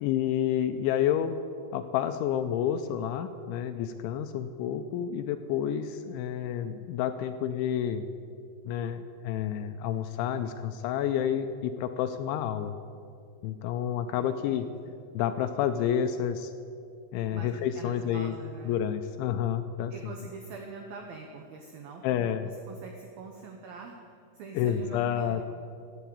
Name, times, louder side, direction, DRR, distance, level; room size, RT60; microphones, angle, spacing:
voice 1, 0.0-1.3 1.7-8.0 8.6-12.8 13.4-14.7 15.1-16.5 17.1-18.3 18.7-19.9 22.0-22.5 24.6-25.4, left 9 dB, 85° left, 9 dB, 2.8 m, -29 dB
voice 2, 14.1-14.9 17.3-17.5 17.7-18.8 19.9-25.4, right 4 dB, 80° right, 3 dB, 2.1 m, -44 dB
17.0 x 8.4 x 8.6 m, 2.4 s
omnidirectional pair, 5.7 m